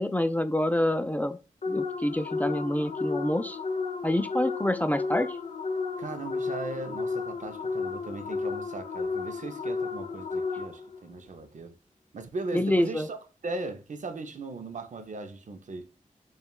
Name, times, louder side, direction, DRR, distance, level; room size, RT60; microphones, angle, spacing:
voice 1, 0.0-1.4 1.7-3.6 4.0-5.4 12.5-13.1, left 1 dB, 10° left, 0.3 m, -27 dB
sound 1, 1.6-11.0, left 4 dB, 65° left, 0.7 m, -33 dB
voice 2, 6.0-11.8 12.1-13.2 13.4-15.9, right 3 dB, 65° right, 0.5 m, -38 dB
6.9 x 2.3 x 2.3 m
cardioid pair, 50°, 14 cm